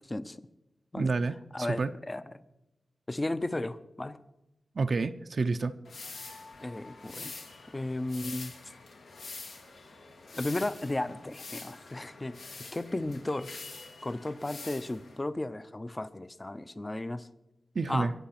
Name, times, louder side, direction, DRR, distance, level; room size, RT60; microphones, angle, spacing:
voice 1, 0.1-0.4 0.9-1.1 1.5-2.2 3.1-4.2 6.6-7.4 7.7-8.6 10.3-13.5 14.0-17.3 17.9-18.1, left 2 dB, 20° left, 14 dB, 0.6 m, -34 dB
voice 2, 1.0-1.9 4.8-5.7 17.7-18.1, right 4 dB, 55° right, 8 dB, 0.6 m, -29 dB
sound 1, 5.8-15.2, left 3 dB, 85° left, 2.3 m, -46 dB
23.0 x 7.7 x 5.8 m, 0.95 s
wide cardioid pair, 100°, 0 cm